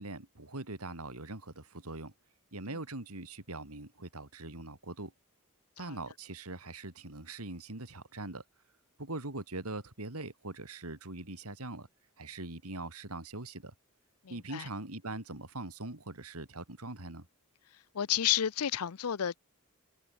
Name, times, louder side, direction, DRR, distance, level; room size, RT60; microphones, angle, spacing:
voice 1, 0.0-2.1 2.5-5.1 5.8-8.4 9.0-11.9 12.2-13.7 14.3-17.3, right 2 dB, 85° right, 3.5 m, -42 dB
voice 2, 14.2-14.7 17.9-19.4, left 10 dB, 85° left, 0.6 m, -31 dB
head